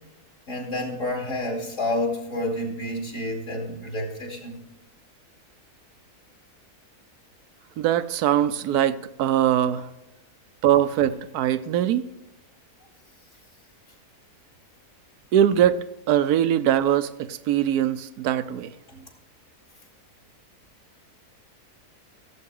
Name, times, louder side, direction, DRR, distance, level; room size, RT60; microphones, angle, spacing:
voice 1, 0.5-4.6 18.9-19.0, left 1 dB, 55° left, 0 dB, 3.0 m, -29 dB
voice 2, 7.8-9.9 10.6-12.1 15.3-18.7, right 10 dB, 85° right, 14 dB, 1.2 m, -22 dB
16.0 x 8.0 x 3.7 m, 1.0 s
omnidirectional pair, 1.6 m